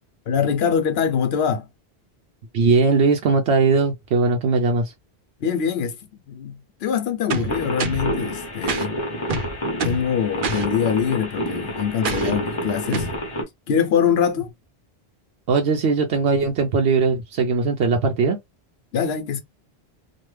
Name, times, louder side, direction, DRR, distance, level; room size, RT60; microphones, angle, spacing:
voice 1, 0.3-1.7 5.4-6.0 6.3-9.0 9.8-13.1 13.7-14.5 18.9-19.4, left 7 dB, 75° left, 0.9 m, -23 dB
voice 2, 2.5-4.9 15.5-18.4, right 4 dB, 85° right, 0.9 m, -19 dB
sound 1, 7.3-8.1 8.7-8.9 9.3-10.1 10.4-10.7 12.0-12.4 12.9-13.2, right 4 dB, 60° right, 0.8 m, -26 dB
sound 2, 7.5-13.4, equal, 30° left, 1.1 m, -29 dB
3.0 x 2.2 x 3.2 m
omnidirectional pair, 1.1 m